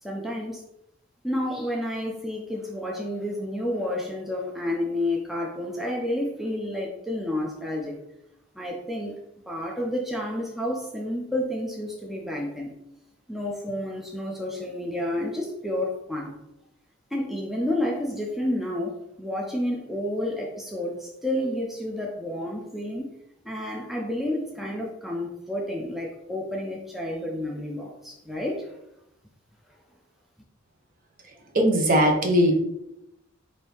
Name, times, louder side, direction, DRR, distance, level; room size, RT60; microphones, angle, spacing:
voice 1, 0.0-0.6 1.2-8.0 8.6-9.2 9.5-12.7 13.3-16.4 17.1-23.1 23.4-28.8 29.7-29.8, left 1 dB, ahead, -2 dB, 0.4 m, -30 dB
voice 2, 31.5-32.6, equal, 45° right, 2 dB, 0.7 m, -19 dB
4.3 x 2.7 x 3.4 m, 0.85 s
head